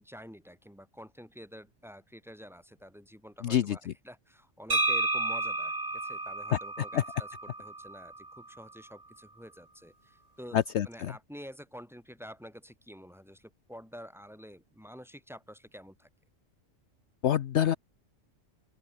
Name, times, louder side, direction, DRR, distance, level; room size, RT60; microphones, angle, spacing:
voice 1, 0.0-16.1, equal, ahead, 4.1 m, -49 dB
voice 2, 3.4-3.8 6.9-7.0 10.5-11.1 17.2-17.8, left 10 dB, 65° left, 1.0 m, -26 dB
sound 1, 4.7-8.5, right 2 dB, 30° right, 2.4 m, -32 dB
open air
omnidirectional pair, 1.3 m